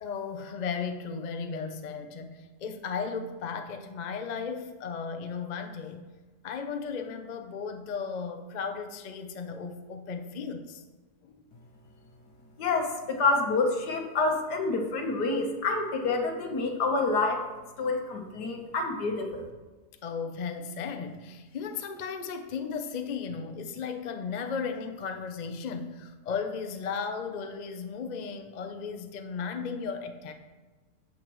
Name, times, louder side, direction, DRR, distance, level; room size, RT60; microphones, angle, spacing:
voice 1, 0.0-6.0 6.4-10.8 11.2-11.5 20.0-30.3, left 5 dB, 55° left, 6 dB, 0.5 m, -35 dB
voice 2, 12.6-17.4 17.8-19.5, left 3 dB, 75° left, 3 dB, 1.8 m, -28 dB
11.5 x 8.1 x 3.1 m, 1.3 s
omnidirectional pair, 1.8 m